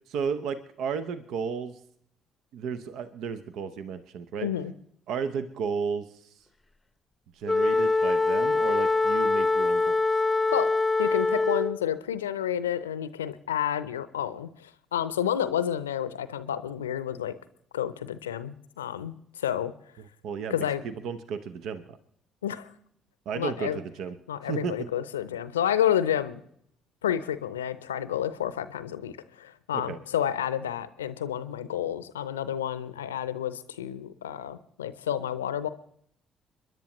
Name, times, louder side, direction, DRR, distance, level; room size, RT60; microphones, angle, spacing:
voice 1, 0.1-1.7 2.5-4.5 5.1-6.1 7.4-10.0 20.2-20.5 20.8-22.0 23.3-24.2 24.5-24.7 29.7-30.0, right 6 dB, 65° right, 12 dB, 0.8 m, -33 dB
voice 2, 4.4-4.7 10.5-10.7 11.0-17.3 17.7-19.7 20.5-20.8 22.4-22.7 23.3-23.8 24.3-26.4 27.0-35.7, left 10 dB, 85° left, 14 dB, 0.6 m, -30 dB
Wind instrument woodwind instrument, 7.5-11.8, left 3 dB, 15° left, 0.8 m, -24 dB
30.0 x 10.5 x 3.0 m, 0.68 s
figure-of-eight pair, 45°, 0 cm